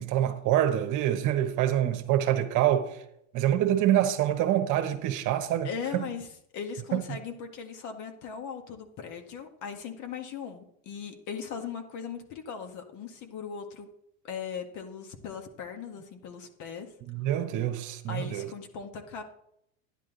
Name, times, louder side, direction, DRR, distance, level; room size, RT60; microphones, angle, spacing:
voice 1, 0.0-3.0 3.3-6.1 6.9-7.0 17.0-18.5, right 11 dB, 50° right, 1.3 m, -26 dB
voice 2, 5.6-6.3 6.5-13.9 14.2-16.9 18.1-19.2, left 6 dB, 50° left, 1.9 m, -39 dB
11.0 x 10.5 x 4.0 m
hypercardioid pair, 105°, 39 cm